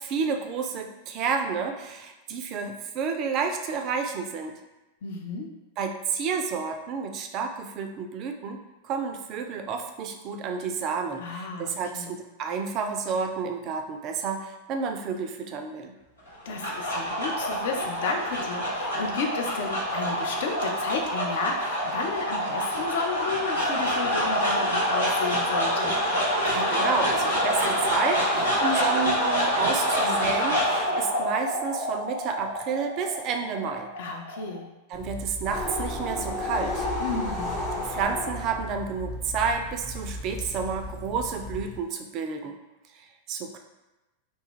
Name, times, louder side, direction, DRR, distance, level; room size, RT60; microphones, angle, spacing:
voice 1, 0.0-4.6 5.8-15.9 26.5-33.9 34.9-36.9 37.8-42.6 42.9-43.6, right 5 dB, 35° right, 5 dB, 0.3 m, -30 dB
voice 2, 5.0-5.6 11.2-12.2 16.5-26.0 34.0-34.7 37.0-37.6, left 4 dB, 55° left, 3 dB, 0.4 m, -33 dB
sound 1, 16.3-34.6, equal, 85° left, 1.1 m, -27 dB
sound 2, 34.9-41.8, left 1 dB, 35° left, 0.9 m, -33 dB
2.6 x 2.2 x 3.6 m, 1.0 s
figure-of-eight pair, 90°, 0 cm